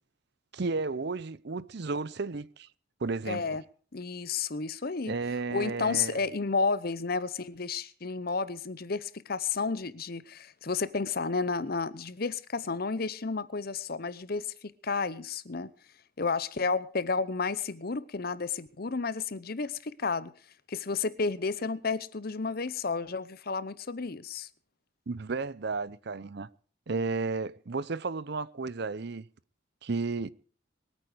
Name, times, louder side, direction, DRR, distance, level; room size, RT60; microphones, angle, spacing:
voice 1, 0.5-2.7 3.0-3.6 5.1-6.2 25.1-26.5 26.9-29.3 29.8-30.3, right 3 dB, 55° right, 0.6 m, -33 dB
voice 2, 3.3-3.6 3.9-5.1 5.5-15.7 16.2-20.3 20.7-24.5, left 4 dB, 50° left, 0.8 m, -31 dB
22.5 x 9.1 x 5.0 m
head